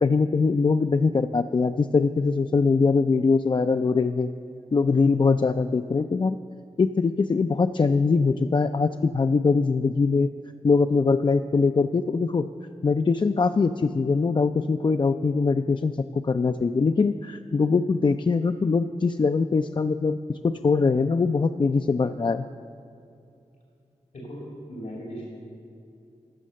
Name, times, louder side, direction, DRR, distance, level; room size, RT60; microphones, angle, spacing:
voice 1, 0.0-4.3 4.7-6.4 6.8-10.3 10.6-12.5 12.8-20.2 20.4-22.5, left 4 dB, 35° left, 8 dB, 0.3 m, -22 dB
voice 2, 24.1-25.2, equal, 85° left, -5 dB, 2.4 m, -38 dB
14.0 x 5.6 x 6.3 m, 2.6 s
cardioid pair, 45°, 13 cm